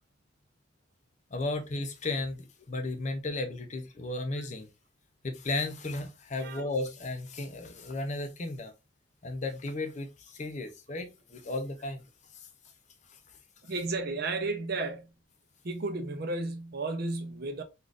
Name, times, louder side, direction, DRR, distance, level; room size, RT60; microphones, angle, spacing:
voice 1, 1.3-4.7 5.2-8.7 9.2-12.0 12.3-12.5 13.1-13.2, left 2 dB, 35° left, 0.5 m, -34 dB
voice 2, 13.6-15.1 15.6-17.6, right 3 dB, 50° right, 0.5 m, -33 dB
3.6 x 2.4 x 2.4 m
head